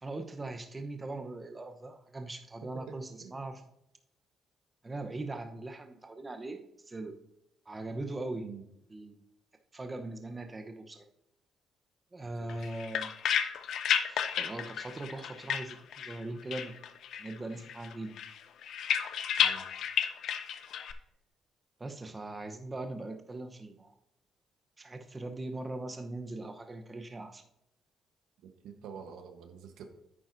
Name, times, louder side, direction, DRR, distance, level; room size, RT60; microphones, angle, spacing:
voice 1, 0.0-3.6 4.8-7.2 7.7-8.5 8.9-9.1 9.7-11.1 12.1-13.1 14.1-16.7 17.2-18.1 21.8-23.9 24.8-27.4, right 2 dB, 25° right, 6 dB, 0.9 m, -40 dB
voice 2, 2.7-3.5 8.4-8.6 12.4-12.7 19.4-19.6 28.4-29.9, right 7 dB, 85° right, 6 dB, 1.2 m, -47 dB
sound 1, 12.5-16.2 16.5-17.4 17.7-20.9, left 8 dB, 75° left, 0.6 m, -32 dB
10.0 x 8.8 x 2.7 m, 0.82 s
cardioid pair, 90°, 0 cm